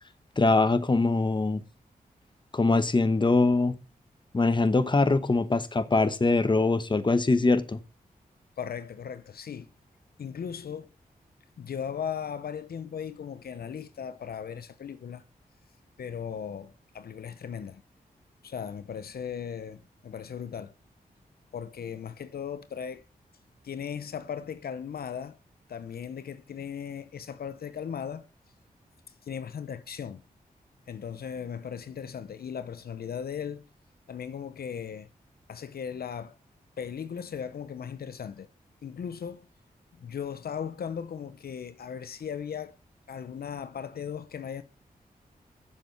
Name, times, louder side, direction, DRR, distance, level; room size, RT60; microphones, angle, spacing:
voice 1, 0.4-1.6 2.5-3.7 4.3-7.8, left 3 dB, 30° left, 1.1 m, -23 dB
voice 2, 8.6-9.7 10.2-10.9 11.6-15.2 16.0-17.8 18.4-20.7 21.5-23.0 23.6-25.4 25.7-28.3 29.2-30.2 30.9-33.6 34.1-35.1 35.5-36.4 36.8-38.5 38.8-39.5 40.0-42.8 43.1-44.6, left 7 dB, 75° left, 0.8 m, -37 dB
7.5 x 7.5 x 6.8 m
cardioid pair, 65°, 16 cm